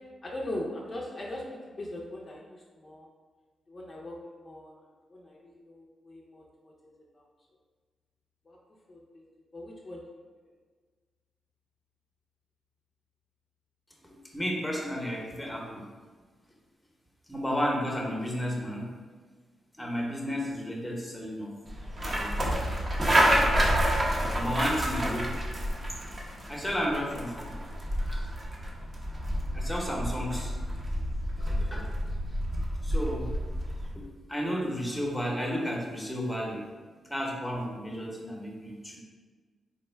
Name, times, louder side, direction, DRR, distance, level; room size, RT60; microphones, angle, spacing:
voice 1, 0.2-1.4 1.8-3.1 3.7-4.8 5.1-6.7 7.1-7.2 8.5-8.6 8.9-9.2 9.5-10.0 24.4-24.8, left 1 dB, 45° left, -3 dB, 0.5 m, -40 dB
voice 2, 14.3-15.8 17.3-18.9 19.8-21.5 22.0-22.8 24.3-25.4 26.5-27.5 28.0-28.2 29.5-30.5 31.4-31.9 32.8-33.3 33.9-36.6 37.1-39.0, equal, 5° left, -2 dB, 0.9 m, -32 dB
sound 1, 21.7-33.9, equal, 35° right, 0.7 m, -29 dB
3.5 x 2.1 x 3.3 m, 1.5 s
supercardioid pair, 55°, 0 cm